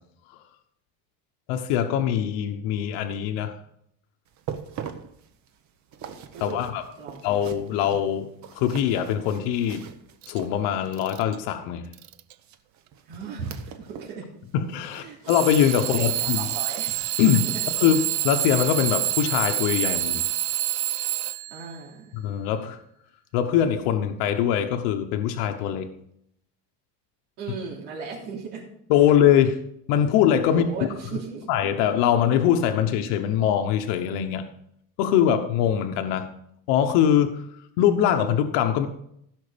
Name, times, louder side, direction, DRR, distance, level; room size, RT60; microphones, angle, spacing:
voice 1, 1.5-3.5 6.4-6.8 7.2-9.8 10.3-11.9 14.5-16.5 17.2-20.2 22.1-22.8 23.3-25.9 28.9-29.6 29.9-30.7 31.5-34.5 35.0-36.3 36.7-37.4 37.8-38.9, left 9 dB, 70° left, 6 dB, 1.1 m, -22 dB
sound 1, 4.3-11.0 12.4-14.2 14.5-16.5 16.9-17.0 17.6-17.7, right 8 dB, 35° right, 0.9 m, -42 dB
voice 2, 6.3-6.6 7.0-7.2 13.0-14.3 15.0-15.2 15.8-17.0 17.5-17.6 21.5-22.2 27.4-28.7 30.5-31.5, right 5 dB, 85° right, -7 dB, 3.5 m, -36 dB
Alarm / Clock, 10.2-10.4 10.9-11.4 11.9-12.3 13.2-13.3 15.3-21.7, right 15 dB, 60° right, 0.7 m, -27 dB
15.5 x 6.4 x 5.2 m, 0.72 s
cardioid pair, 165°, 47 cm